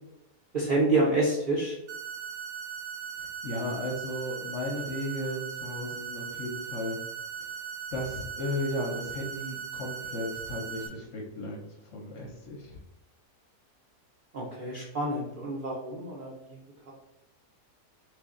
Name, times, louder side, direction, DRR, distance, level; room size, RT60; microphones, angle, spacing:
voice 1, 0.5-1.8 14.3-16.6 16.9-17.0, right 2 dB, 85° right, -3 dB, 0.4 m, -28 dB
sound 1, 1.9-10.9, right 7 dB, 65° right, 0.8 m, -39 dB
voice 2, 3.4-7.0 7.9-11.6 11.9-12.8, left 1 dB, 65° left, 0 dB, 0.8 m, -35 dB
3.1 x 2.5 x 3.6 m, 0.86 s
omnidirectional pair, 1.7 m